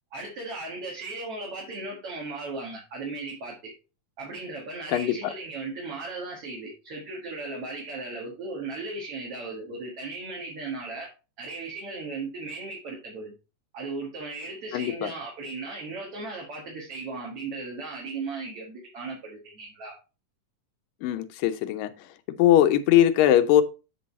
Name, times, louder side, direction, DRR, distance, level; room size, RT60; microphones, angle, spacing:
voice 1, 0.1-3.7 4.2-11.1 11.4-13.3 13.7-19.9, right 3 dB, 50° right, 2.5 m, -36 dB
voice 2, 4.9-5.3 14.7-15.1 21.0-21.9 22.4-23.6, left 11 dB, 85° left, 2.5 m, -21 dB
8.5 x 5.4 x 4.1 m
omnidirectional pair, 3.9 m